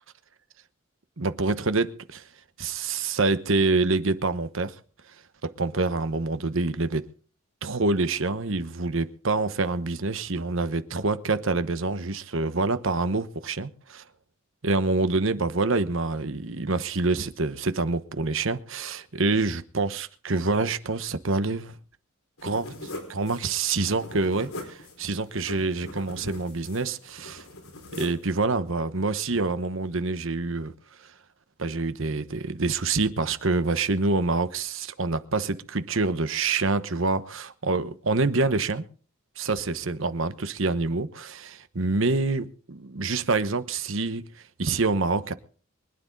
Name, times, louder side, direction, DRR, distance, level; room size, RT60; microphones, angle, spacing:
voice 1, 1.2-2.2 2.6-4.7 5.4-7.1 7.6-14.0 14.6-21.8 22.4-27.4 28.0-30.7 31.6-38.8 39.4-44.3 44.6-45.3, right 3 dB, 60° right, 1.0 m, -26 dB
sound 1, 22.4-28.3, left 1 dB, 75° left, 4.6 m, -42 dB
24.5 x 9.8 x 3.9 m
head